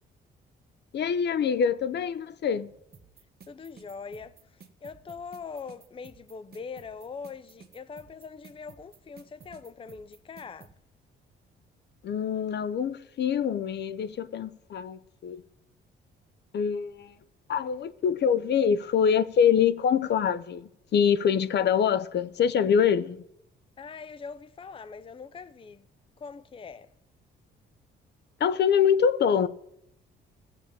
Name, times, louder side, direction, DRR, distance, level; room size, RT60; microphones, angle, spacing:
voice 1, 0.9-2.7 12.0-15.4 16.5-17.1 17.5-23.2 28.4-29.5, left 7 dB, 60° left, 0.8 m, -25 dB
sound 1, 2.9-10.7, right 6 dB, 50° right, 1.4 m, -53 dB
voice 2, 3.5-10.7 23.8-25.9 26.2-26.9, left 5 dB, 25° left, 0.6 m, -42 dB
15.0 x 7.0 x 8.8 m
cardioid pair, 90°, 20 cm